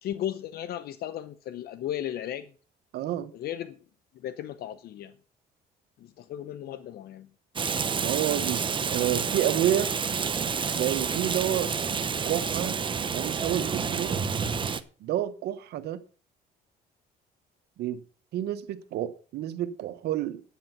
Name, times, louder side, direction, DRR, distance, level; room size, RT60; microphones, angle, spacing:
voice 1, 0.0-2.5 3.3-3.8 4.2-5.2 6.0-7.3, left 11 dB, 65° left, 0.8 m, -35 dB
voice 2, 2.9-3.3 8.0-9.9 10.7-11.7 12.3-12.8 13.1-14.1 15.0-16.0 17.8-18.0 18.3-20.4, right 11 dB, 75° right, 1.1 m, -29 dB
Rain, 7.6-14.8, right 6 dB, 30° right, 0.9 m, -29 dB
10.0 x 8.9 x 6.0 m
cardioid pair, 110°, 17 cm